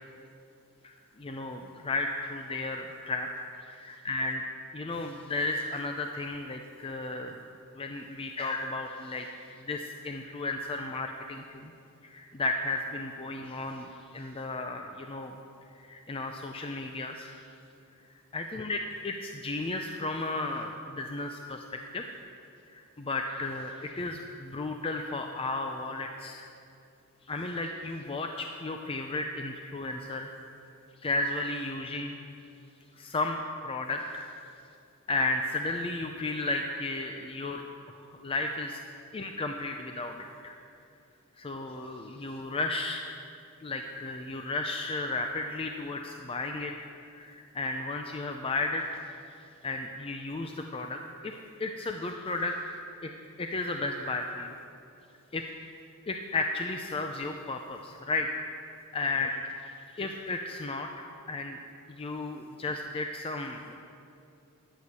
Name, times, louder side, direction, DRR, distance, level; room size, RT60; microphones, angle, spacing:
voice 1, 0.8-3.3 3.6-4.4 4.7-7.5 7.7-9.3 9.6-11.7 12.0-15.4 15.8-17.4 18.3-22.0 22.7-26.5 27.3-30.3 31.0-32.2 33.0-34.3 35.1-37.6 38.1-38.8 39.1-40.6 41.4-43.1 43.6-49.1 49.6-51.3 51.6-52.5 53.0-53.1 53.4-54.5 55.3-55.4 56.1-58.3 58.6-61.6 61.9-63.7, left 2 dB, 25° left, 4 dB, 0.5 m, -34 dB
11.5 x 8.1 x 6.7 m, 2.6 s
head